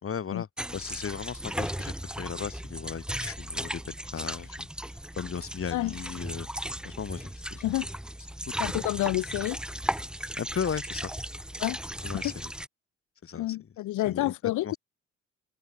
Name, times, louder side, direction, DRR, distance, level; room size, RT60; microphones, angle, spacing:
voice 1, 0.0-4.9 5.2-6.5 6.8-7.6 8.5-8.6 10.4-11.1 12.0-12.5 13.2-13.7 14.1-14.3 14.6-14.8, left 7 dB, 45° left, 4.1 m, -36 dB
sound 1, 0.6-12.7, right 1 dB, 5° right, 1.0 m, -36 dB
voice 2, 8.6-9.6 11.6-12.3 13.4-14.7, left 16 dB, 80° left, 0.8 m, -29 dB
cardioid pair, 90°, 30 cm